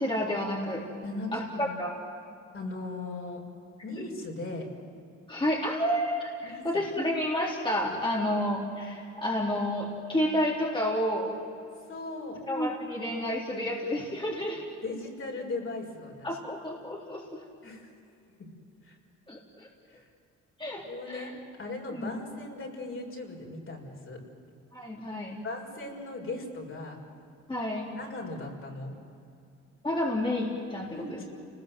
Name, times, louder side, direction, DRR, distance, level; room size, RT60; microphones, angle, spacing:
voice 1, 0.0-0.8 1.3-1.9 5.3-11.3 12.5-14.6 16.2-17.4 19.3-19.7 20.6-21.3 21.9-22.1 24.7-25.4 27.5-27.9 29.8-30.9, left 1 dB, 15° left, -4 dB, 4.0 m, -30 dB
voice 2, 1.0-1.7 2.5-3.4 3.8-4.7 6.4-6.6 8.0-8.2 11.9-12.4 14.8-16.4 17.6-17.9 18.8-18.9 19.9-20.1 20.8-24.2 25.4-27.0 27.9-28.9 30.9-31.2, left 2 dB, 45° left, 0 dB, 6.4 m, -38 dB
29.5 x 20.5 x 8.0 m, 2.6 s
cardioid pair, 90°, 30 cm